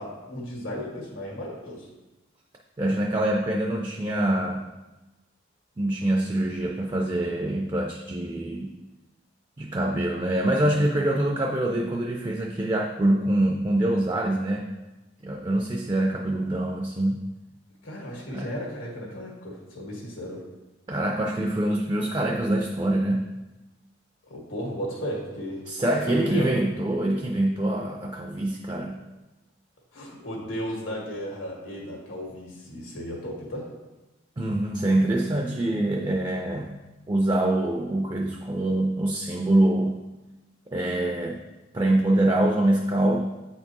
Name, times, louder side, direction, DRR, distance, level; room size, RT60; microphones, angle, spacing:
voice 1, 0.0-1.9 17.8-20.4 24.3-25.6 26.1-26.5 29.9-33.7, equal, 90° left, -2 dB, 1.8 m, -35 dB
voice 2, 2.8-4.7 5.8-8.7 9.6-14.7 15.2-17.3 18.3-18.5 20.9-23.3 25.7-29.0 34.4-36.8 37.1-40.0 40.7-41.4 41.7-43.2, right 1 dB, 20° right, 1 dB, 0.3 m, -25 dB
8.4 x 4.3 x 2.9 m, 1.1 s
head